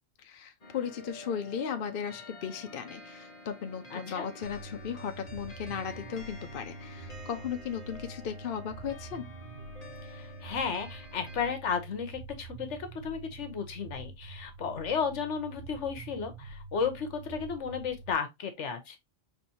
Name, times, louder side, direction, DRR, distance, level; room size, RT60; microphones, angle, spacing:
voice 1, 0.2-9.3, left 7 dB, 55° left, 0.7 m, -36 dB
sound 1, 0.6-11.5, left 1 dB, 35° left, 1.1 m, -49 dB
voice 2, 3.9-4.2 10.0-19.0, left 6 dB, 70° left, 1.2 m, -34 dB
sound 2, 4.4-18.1, right 3 dB, 85° right, 1.1 m, -46 dB
5.8 x 3.1 x 2.7 m
omnidirectional pair, 1.3 m